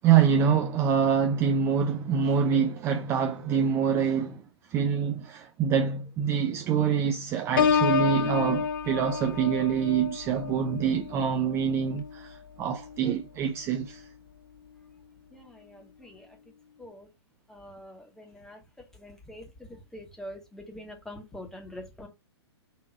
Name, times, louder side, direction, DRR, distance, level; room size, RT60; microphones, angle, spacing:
voice 1, 0.0-14.1, right 7 dB, 20° right, 0.4 m, -25 dB
Piano, 7.6-13.2 13.7-14.0, left 7 dB, 50° left, 0.6 m, -30 dB
voice 2, 15.3-16.5 16.8-17.1 17.5-22.1, left 1 dB, 5° left, 1.1 m, -45 dB
4.1 x 2.9 x 4.5 m
figure-of-eight pair, 115°, 14 cm